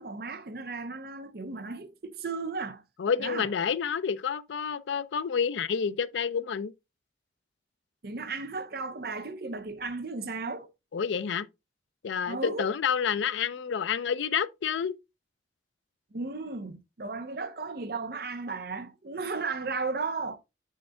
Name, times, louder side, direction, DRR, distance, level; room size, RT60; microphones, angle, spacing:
voice 1, 0.0-2.8 3.2-3.5 8.0-10.7 12.3-12.7 16.1-20.4, right 4 dB, 55° right, 0.7 m, -35 dB
voice 2, 3.0-6.7 10.9-11.5 12.0-14.9, left 7 dB, 85° left, 0.4 m, -29 dB
6.5 x 6.5 x 2.2 m
head